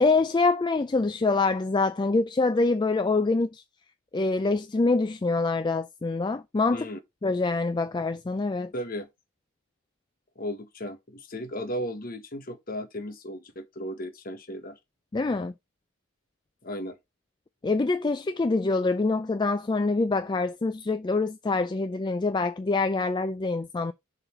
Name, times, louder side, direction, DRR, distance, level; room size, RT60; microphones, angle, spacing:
voice 1, 0.0-3.6 4.1-6.9 7.2-8.7 15.1-15.5 17.6-23.9, left 3 dB, 20° left, 0.3 m, -25 dB
voice 2, 8.7-9.1 10.3-14.8 16.6-17.0, equal, 45° left, 1.3 m, -35 dB
6.9 x 4.0 x 4.3 m
head